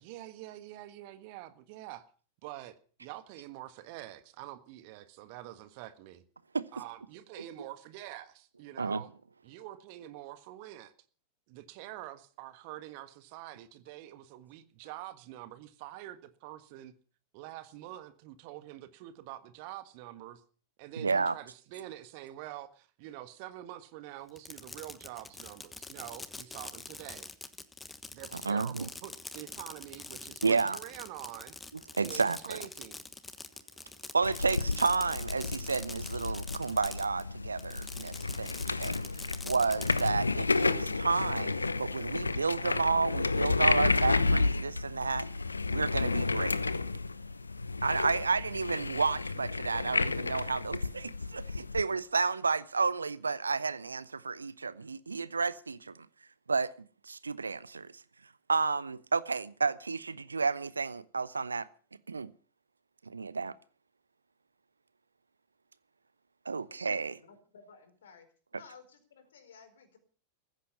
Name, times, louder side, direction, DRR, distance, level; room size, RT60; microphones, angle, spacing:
voice 1, 0.0-2.0 2.4-6.2 6.7-9.1 9.4-10.9 11.5-16.9 17.3-20.4 20.8-27.3 28.1-31.5 32.0-33.0, right 14 dB, 45° right, 1.5 m, -46 dB
voice 2, 21.0-21.3 28.4-28.9 30.4-30.8 31.9-32.6 34.1-39.0 39.4-45.3 45.7-46.6 47.8-56.1 56.5-56.7 57.0-57.9 58.5-61.7 62.1-62.3 63.1-63.5 66.5-67.2, right 4 dB, 75° right, 0.7 m, -31 dB
Fireworks, 24.3-37.2 37.6-40.1, left 3 dB, 10° left, 1.2 m, -45 dB
sound 1, 34.2-51.8, left 3 dB, 80° left, 0.7 m, -31 dB
voice 3, 67.2-68.3 68.5-70.0, left 5 dB, 65° left, 4.3 m, -55 dB
16.0 x 14.5 x 5.7 m
figure-of-eight pair, 90°, 0 cm